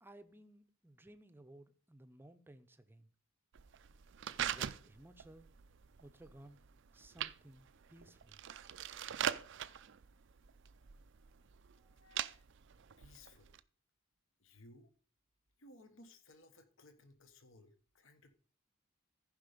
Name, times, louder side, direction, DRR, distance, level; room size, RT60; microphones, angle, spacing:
voice 1, 0.0-3.1 4.3-5.5 6.0-6.6 6.9-8.4 11.8-12.0, right 1 dB, 10° right, 0.7 m, -58 dB
sound 1, 3.5-13.6, right 9 dB, 55° right, 0.5 m, -43 dB
voice 2, 12.0-12.5 13.0-13.5 14.4-14.9 15.6-18.3, left 2 dB, 60° left, 1.2 m, -61 dB
14.5 x 5.4 x 5.1 m
head